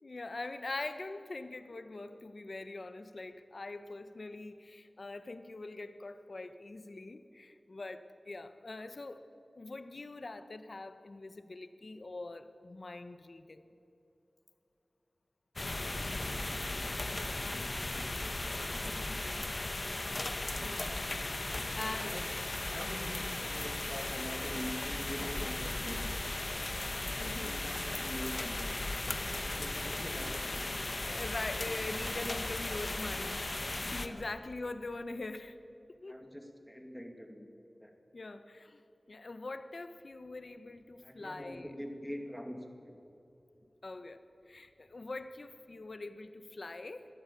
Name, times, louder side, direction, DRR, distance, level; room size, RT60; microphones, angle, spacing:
voice 1, 0.0-9.2 9.6-13.6 20.6-21.0 21.7-22.2 27.2-27.5 30.7-30.8 31.1-35.6 36.0-36.2 38.1-38.8 39.1-41.7 43.8-44.2 44.5-47.1, left 2 dB, 60° left, 10 dB, 1.3 m, -43 dB
sound 1, 15.6-34.1, left 2 dB, 45° left, 1.5 m, -36 dB
voice 2, 17.4-19.2 21.4-22.3 22.7-26.4 27.4-28.8 29.3-30.9 31.6-31.7 34.0-34.3 36.1-37.5 37.8-38.0 41.0-43.0, equal, 5° left, 4 dB, 2.2 m, -45 dB
22.5 x 15.0 x 8.6 m, 2.9 s
wide cardioid pair, 70°, 0 cm